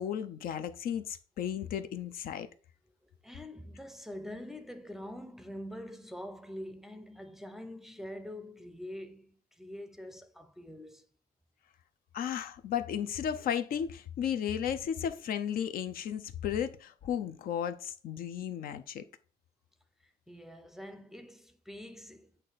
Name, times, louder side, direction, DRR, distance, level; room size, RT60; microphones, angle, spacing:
voice 1, 0.0-2.5 12.1-19.0, left 9 dB, 60° left, 0.7 m, -34 dB
voice 2, 3.2-11.1 20.0-22.3, left 1 dB, ahead, 0.6 m, -45 dB
8.2 x 3.3 x 4.0 m
cardioid pair, 110°, 17 cm